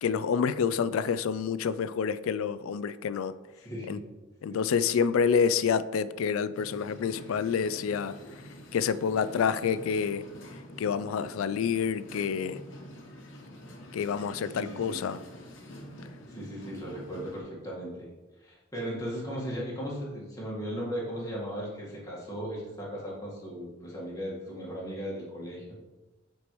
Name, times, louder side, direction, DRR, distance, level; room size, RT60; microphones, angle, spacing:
voice 1, 0.0-3.3 3.9-4.0 4.4-8.1 8.7-10.2 10.8-12.6 13.9-15.2, left 6 dB, 85° left, 14 dB, 0.3 m, -28 dB
voice 2, 3.6-4.0 4.5-4.6 14.5-15.0 16.3-18.1 18.4-25.6, equal, 15° left, -5 dB, 1.6 m, -37 dB
sound 1, 6.5-17.4, left 1 dB, 65° left, 1.0 m, -47 dB
8.2 x 4.5 x 3.1 m, 1.1 s
head